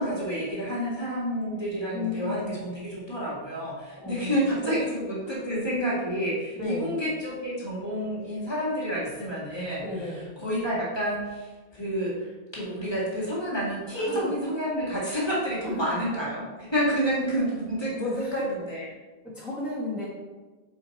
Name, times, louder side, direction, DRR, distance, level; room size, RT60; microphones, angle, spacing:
voice 1, 0.0-10.1 10.4-16.4 16.7-18.9, equal, 25° left, -8 dB, 1.9 m, -29 dB
voice 2, 1.9-2.6 4.0-4.3 4.6-4.8 5.2-5.4 6.6-6.9 9.8-10.3 13.9-14.3 15.6-15.7 17.8-18.3 19.2-20.1, left 2 dB, ahead, -9 dB, 1.5 m, -33 dB
5.0 x 4.8 x 4.1 m, 1.3 s
omnidirectional pair, 1.0 m